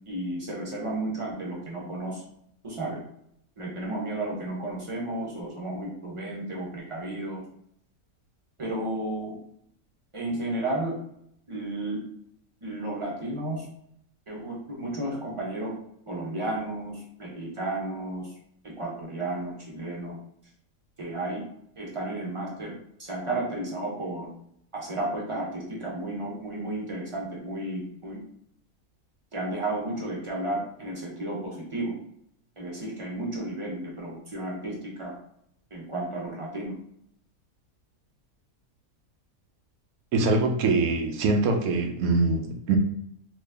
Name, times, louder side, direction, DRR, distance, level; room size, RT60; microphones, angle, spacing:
voice 1, 0.1-2.2 2.6-3.0 3.6-7.4 8.6-9.4 10.1-11.0 11.5-12.0 12.6-13.7 14.3-15.7 16.1-18.3 18.6-20.2 21.0-21.4 21.8-22.7 23.0-24.3 24.7-28.2 29.3-31.9 32.6-35.1 35.7-36.8, right 1 dB, 25° right, -3 dB, 0.7 m, -33 dB
voice 2, 40.1-42.8, right 3 dB, 75° right, 4 dB, 1.0 m, -23 dB
2.9 x 2.4 x 3.3 m, 0.71 s
omnidirectional pair, 1.6 m